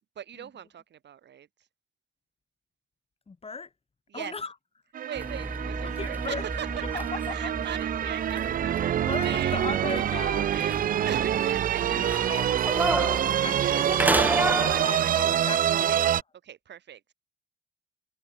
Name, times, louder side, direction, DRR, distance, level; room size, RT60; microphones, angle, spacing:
voice 1, 0.2-1.7 4.1-4.3 5.0-6.7 7.3-9.6 10.5-12.9 13.3-13.9 14.7-15.3 15.7-16.1 16.4-17.1, right 9 dB, 60° right, 4.0 m, -40 dB
voice 2, 3.3-3.7 4.1-4.5 5.8-6.5 6.9-7.5 9.1-10.8 11.9-16.0, left 4 dB, 30° left, 3.8 m, -38 dB
sound 1, 4.9-16.2, right 10 dB, 45° right, 0.4 m, -26 dB
sound 2, 5.2-14.9, right 1 dB, 10° right, 2.3 m, -32 dB
cardioid pair, 90°, 20 cm